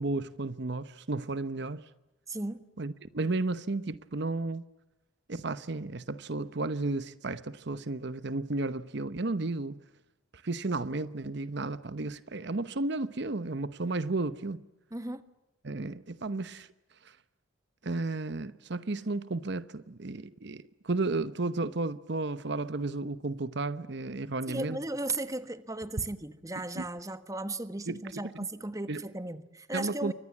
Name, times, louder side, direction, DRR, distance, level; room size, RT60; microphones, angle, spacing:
voice 1, 0.0-1.9 2.8-4.6 5.3-9.8 10.3-14.6 15.6-16.7 17.0-17.2 17.8-24.8 26.7-26.9 27.9-28.5 28.9-29.0 29.7-30.1, right 2 dB, 55° right, 0.9 m, -33 dB
voice 2, 2.3-2.6 14.9-15.2 24.5-30.1, right 2 dB, 15° right, 1.3 m, -36 dB
29.5 x 24.5 x 7.3 m
head